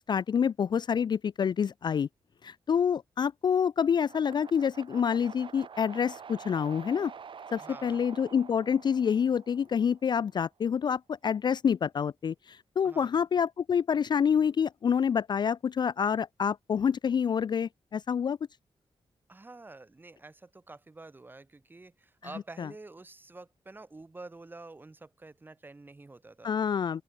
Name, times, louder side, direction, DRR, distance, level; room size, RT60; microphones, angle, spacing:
voice 1, 0.1-2.1 2.4-7.1 7.5-18.4 22.6-22.7 26.4-27.0, left 7 dB, 45° left, 0.4 m, -27 dB
sound 1, 4.0-10.2, right 6 dB, 55° right, 3.9 m, -47 dB
voice 2, 7.6-8.0 12.8-13.2 19.3-26.5, right 2 dB, 20° right, 3.4 m, -48 dB
open air
wide cardioid pair, 170°, 10 cm